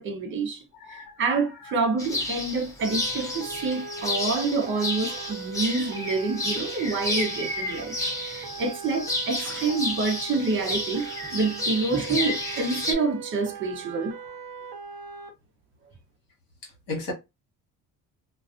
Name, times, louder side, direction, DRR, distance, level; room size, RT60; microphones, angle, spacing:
voice 1, 0.0-14.3, right 3 dB, 35° right, 0.6 m, -28 dB
voice 2, 0.8-1.2 16.6-17.1, left 2 dB, 70° left, 1.2 m, -35 dB
sound 1, 2.0-12.9, left 1 dB, 10° left, 0.6 m, -31 dB
sound 2, 2.8-15.3, right 6 dB, 80° right, 0.8 m, -40 dB
2.4 x 2.3 x 2.4 m
cardioid pair, 155°, 36 cm